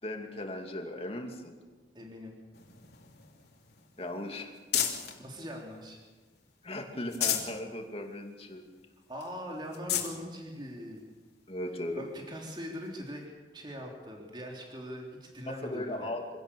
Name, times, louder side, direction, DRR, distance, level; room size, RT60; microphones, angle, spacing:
voice 1, 0.0-1.5 4.0-4.9 6.6-8.6 11.5-12.0 15.5-16.2, left 1 dB, 35° left, 3 dB, 2.5 m, -37 dB
voice 2, 1.9-2.4 5.2-6.0 9.1-11.1 11.9-13.2 13.5-16.1, equal, 25° right, -1 dB, 3.3 m, -41 dB
sound 1, 2.5-5.2 5.7-6.5 6.9-7.6 8.0-8.1 8.5-8.6 9.2-9.3 9.7-10.2 11.0-11.1 12.8-12.9, left 10 dB, 70° left, 3.3 m, -34 dB
25.0 x 17.5 x 6.9 m, 1.3 s
head